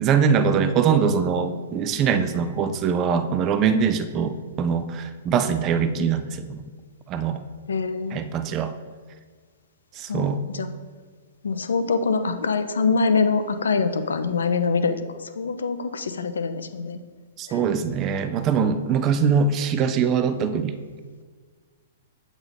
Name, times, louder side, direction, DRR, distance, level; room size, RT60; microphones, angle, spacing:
voice 1, 0.0-6.6 7.1-7.4 8.1-8.7 10.0-10.5 17.4-20.8, right 6 dB, 30° right, 11 dB, 0.4 m, -22 dB
voice 2, 7.7-8.2 10.1-10.7 11.4-15.0 15.2-17.0 17.5-17.6, left 4 dB, 80° left, 10 dB, 0.4 m, -24 dB
7.9 x 3.6 x 3.8 m, 1.5 s
hypercardioid pair, 115°, 0 cm